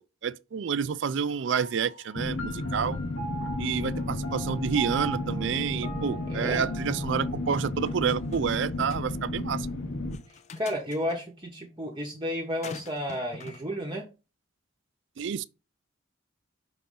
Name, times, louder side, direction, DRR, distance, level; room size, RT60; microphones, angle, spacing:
voice 1, 0.2-3.0 3.6-9.7 15.2-15.4, right 7 dB, 60° right, 0.4 m, -29 dB
sound 1, 1.6-10.4, right 3 dB, 90° left, 2.1 m, -43 dB
sound 2, 2.2-10.2, left 2 dB, 75° left, 1.0 m, -33 dB
voice 2, 6.3-6.7 10.3-14.1, equal, 25° right, 0.9 m, -32 dB
sound 3, 7.6-8.6 8.9-9.0 10.1-11.2 12.6-13.6, left 4 dB, 35° left, 0.5 m, -44 dB
5.6 x 3.8 x 5.5 m
head